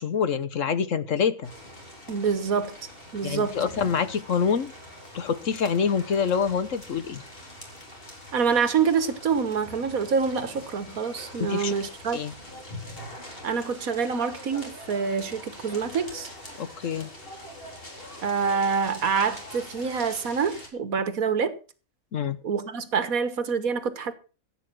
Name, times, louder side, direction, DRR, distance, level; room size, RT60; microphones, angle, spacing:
voice 1, 0.0-1.5 3.2-4.7 5.1-7.2 11.5-11.7 12.1-12.3 16.6-17.1 22.1-22.4, left 6 dB, 60° left, 1.3 m, -26 dB
sound 1, 1.4-20.7, left 1 dB, 40° left, 4.2 m, -43 dB
voice 2, 2.1-2.7 3.1-3.6 8.3-12.2 13.4-16.3 18.2-21.5 22.4-24.1, right 6 dB, 70° right, 1.8 m, -26 dB
15.5 x 8.6 x 6.1 m
omnidirectional pair, 1.5 m